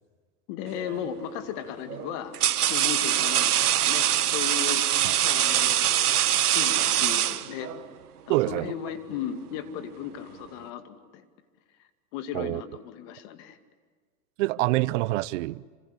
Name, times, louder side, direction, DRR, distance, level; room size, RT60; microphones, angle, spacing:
voice 1, 0.5-2.4 2.7-4.1 4.3-4.9 5.2-6.2 6.5-7.7 8.3-11.2 12.1-13.6, left 9 dB, 50° left, 2.4 m, -36 dB
sound 1, 0.8-1.1 1.9-7.9, right 11 dB, 85° right, 1.1 m, -24 dB
voice 2, 8.3-8.7 12.3-12.6 14.4-15.6, right 19 dB, 55° right, 0.7 m, -26 dB
27.0 x 26.0 x 8.4 m
hypercardioid pair, 115°, 45 cm